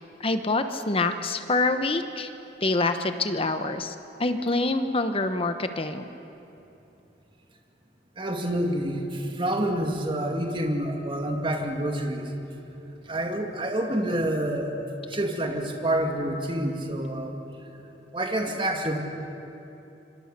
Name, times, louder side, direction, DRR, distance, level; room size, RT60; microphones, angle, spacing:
voice 1, 0.2-2.3 2.6-3.9 4.2-6.0, left 2 dB, 30° left, 8 dB, 1.0 m, -26 dB
voice 2, 8.2-12.3 13.1-14.8 15.1-17.4 18.1-19.0, right 1 dB, 30° right, 3 dB, 2.3 m, -28 dB
25.5 x 24.0 x 6.8 m, 2.9 s
head